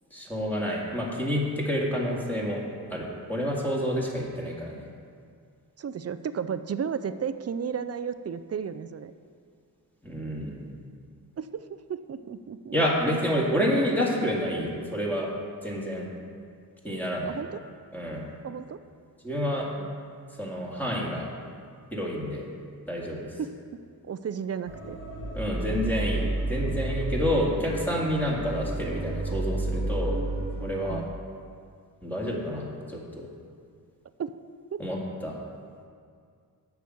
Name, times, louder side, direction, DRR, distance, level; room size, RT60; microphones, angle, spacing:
voice 1, 0.1-2.6 2.9-4.8 10.0-10.7 12.7-15.3 15.6-16.1 16.8-17.3 17.9-18.3 19.2-19.7 20.4-21.3 21.9-22.5 22.9-23.3 25.3-30.2 30.6-31.0 32.0-33.3 34.8-35.4, equal, 5° left, -3 dB, 2.2 m, -29 dB
voice 2, 5.8-9.1 11.4-12.7 17.3-17.6 18.4-18.8 19.8-19.9 23.4-25.0 30.9-31.1 34.2-34.3 34.7-34.8, right 7 dB, 45° right, 12 dB, 0.5 m, -34 dB
sound 1, 24.7-30.9, right 2 dB, 70° left, 2.6 m, -31 dB
8.4 x 6.1 x 7.9 m, 2.2 s
cardioid pair, 90°, 36 cm